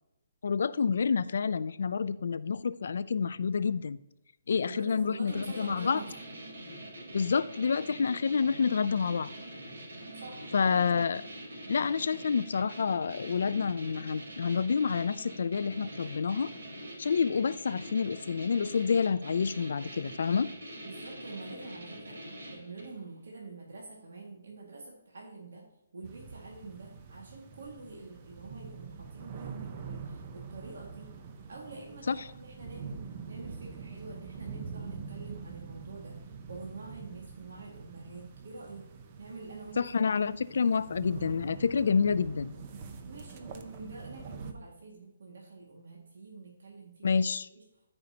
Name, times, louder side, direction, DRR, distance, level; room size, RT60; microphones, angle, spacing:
voice 1, 0.4-4.0 4.5-6.0 7.1-9.3 10.5-11.2 11.7-16.5 17.0-20.5 32.1-32.2 39.8-42.5 47.0-47.5, left 5 dB, 60° left, 15 dB, 0.3 m, -28 dB
voice 2, 4.7-6.1 10.1-10.7 20.8-25.7 25.9-31.1 31.5-36.2 36.5-38.9 39.2-39.9 43.0-47.6, right 3 dB, 70° right, -2 dB, 1.9 m, -46 dB
sound 1, 5.3-23.0, right 1 dB, 90° right, 3.3 m, -44 dB
sound 2, 26.0-44.5, right 5 dB, 25° right, 0.6 m, -45 dB
13.5 x 5.4 x 2.8 m, 0.89 s
hypercardioid pair, 175°, 0 cm